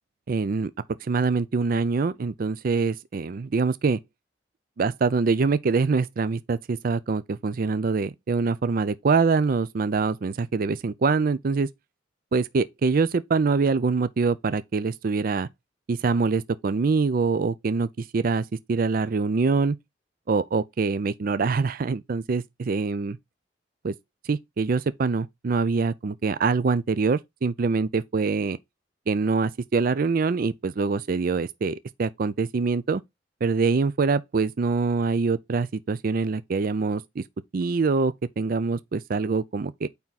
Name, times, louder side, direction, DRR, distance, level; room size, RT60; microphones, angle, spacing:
voice 1, 0.3-0.7 1.0-4.0 4.8-11.7 12.3-15.5 15.9-19.8 20.3-23.2 23.8-23.9 24.2-28.6 29.1-33.0 33.4-37.2 37.5-39.9, right 4 dB, 50° right, 0.4 m, -24 dB
8.8 x 3.6 x 4.0 m
head